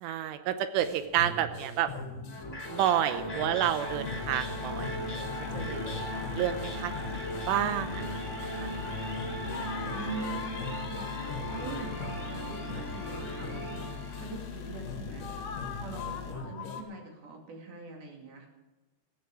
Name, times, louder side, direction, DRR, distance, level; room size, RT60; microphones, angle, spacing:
voice 1, 0.0-1.9 2.7-5.2 5.5-5.8 6.4-6.9 7.5-8.2 8.6-8.7, right 11 dB, 85° right, 10 dB, 3.3 m, -29 dB
sound 1, 0.8-16.8, left 4 dB, 55° left, 2.8 m, -42 dB
sound 2, 2.3-14.5, equal, 20° left, 2.6 m, -38 dB
sound 3, 3.9-16.3, left 7 dB, 80° left, 1.5 m, -42 dB
voice 2, 9.8-11.1 11.3-18.5, right 3 dB, 55° right, 1 dB, 4.4 m, -43 dB
15.0 x 15.0 x 4.9 m, 1.2 s
omnidirectional pair, 5.6 m